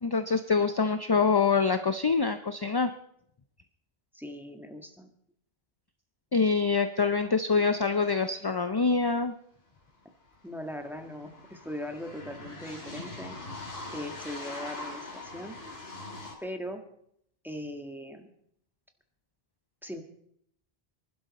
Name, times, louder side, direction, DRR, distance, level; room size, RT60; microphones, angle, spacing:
voice 1, 0.0-2.9 6.3-9.3, left 4 dB, 30° left, 9 dB, 0.5 m, -25 dB
voice 2, 4.1-5.1 10.4-13.3 13.9-15.6 16.4-16.8 17.4-18.3 19.8-20.0, equal, ahead, 4 dB, 1.5 m, -39 dB
sound 1, 9.8-9.9 10.1-16.3, left 2 dB, 75° left, 3.6 m, -42 dB
25.0 x 11.5 x 4.2 m, 0.70 s
omnidirectional pair, 1.0 m